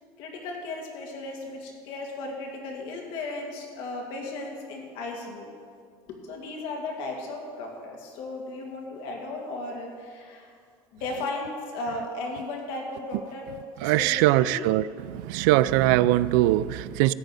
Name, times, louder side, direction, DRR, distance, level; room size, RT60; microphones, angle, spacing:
voice 1, 0.2-5.5 6.1-10.5 10.9-13.5 13.8-14.7, left 2 dB, 55° left, 0 dB, 2.5 m, -35 dB
voice 2, 13.8-14.8 15.1-17.1, right 15 dB, 80° right, 17 dB, 0.4 m, -21 dB
14.0 x 5.3 x 9.0 m, 2.2 s
cardioid pair, 175°, 11 cm